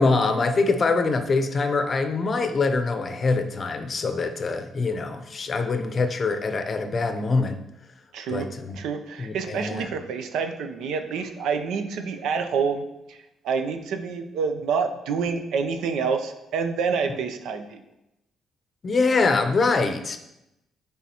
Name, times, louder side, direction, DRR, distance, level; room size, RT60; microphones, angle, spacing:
voice 1, 0.0-7.6 8.3-8.7 9.2-9.9 17.1-17.2 18.8-20.2, left 3 dB, 40° left, 8 dB, 0.6 m, -24 dB
voice 2, 8.1-13.2 13.4-17.8, right 5 dB, 85° right, 7 dB, 0.5 m, -28 dB
9.9 x 3.6 x 2.9 m, 0.89 s
cardioid pair, 90°, 0 cm